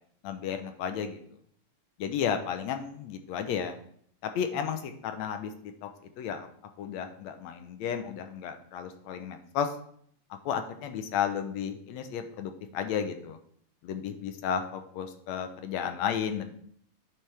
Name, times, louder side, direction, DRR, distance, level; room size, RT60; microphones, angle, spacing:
voice 1, 0.2-1.2 2.0-3.8 4.2-5.9 6.2-6.5 6.8-9.7 10.5-13.4 13.8-16.5, left 8 dB, 70° left, 7 dB, 1.8 m, -33 dB
10.0 x 8.1 x 3.4 m, 0.63 s
omnidirectional pair, 3.7 m